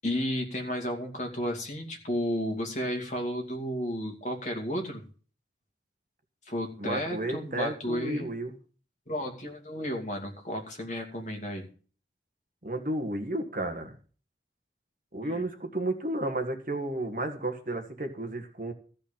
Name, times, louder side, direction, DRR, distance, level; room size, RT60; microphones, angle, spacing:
voice 1, 0.0-5.0 6.5-8.3 9.1-11.7 15.2-15.5, equal, 40° left, 3 dB, 2.4 m, -33 dB
voice 2, 6.8-8.5 12.6-14.0 15.1-18.7, right 1 dB, 45° right, 6 dB, 1.7 m, -32 dB
14.0 x 5.3 x 8.7 m, 0.40 s
head